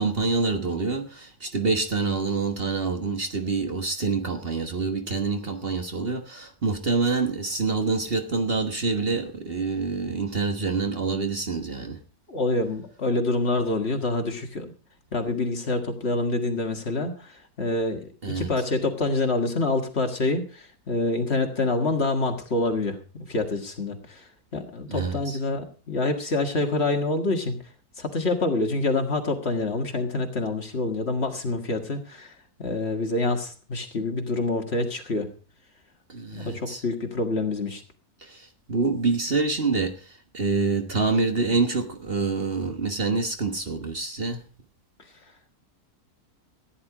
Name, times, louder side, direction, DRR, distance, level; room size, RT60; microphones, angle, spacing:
voice 1, 0.0-12.0 18.2-18.5 24.9-25.4 36.1-36.8 38.2-44.4, right 4 dB, 40° right, 5 dB, 1.4 m, -26 dB
voice 2, 12.3-14.7 15.1-27.6 28.0-32.3 32.6-35.3 36.3-37.8, left 2 dB, 45° left, 5 dB, 1.9 m, -27 dB
14.5 x 10.5 x 4.8 m, 0.36 s
omnidirectional pair, 1.6 m